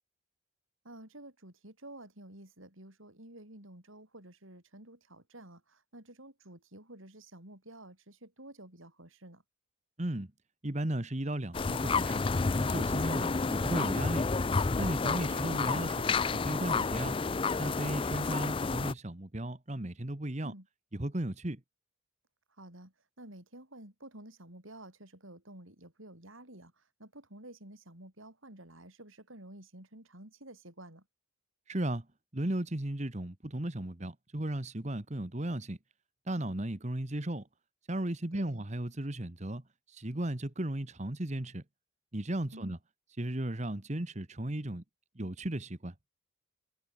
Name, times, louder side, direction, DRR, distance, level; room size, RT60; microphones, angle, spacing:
voice 1, 0.8-9.4 15.3-15.6 20.4-20.7 22.5-31.1 38.3-38.6 42.5-42.8, right 1 dB, 75° right, 7.4 m, -51 dB
voice 2, 10.0-10.3 10.6-12.2 12.7-14.3 14.8-17.2 17.6-20.5 20.9-21.6 31.7-32.1 32.3-35.8 36.3-37.5 37.9-41.6 42.1-42.8 43.2-44.8 45.1-45.9, right 1 dB, 35° right, 1.4 m, -35 dB
sound 1, 11.5-18.9, left 4 dB, 25° left, 0.4 m, -30 dB
head